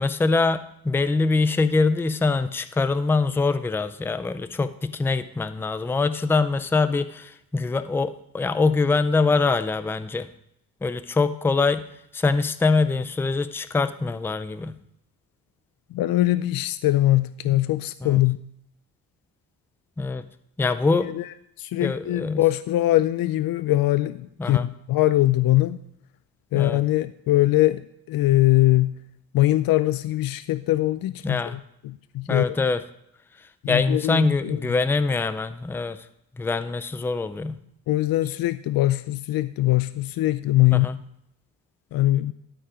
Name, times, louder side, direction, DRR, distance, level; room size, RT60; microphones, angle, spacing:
voice 1, 0.0-10.3 10.8-11.8 12.1-14.8 20.0-20.2 20.6-21.1 21.8-22.4 24.4-24.7 26.5-26.8 31.2-31.6 32.3-32.8 33.7-36.0 36.4-37.6 40.7-41.0, left 3 dB, 5° left, 12 dB, 0.4 m, -23 dB
voice 2, 15.9-18.4 21.0-25.8 26.5-29.0 29.3-32.6 33.6-34.7 37.9-40.9 41.9-42.3, left 16 dB, 70° left, 14 dB, 0.5 m, -22 dB
12.5 x 4.7 x 5.0 m, 0.77 s
cardioid pair, 125°, 36 cm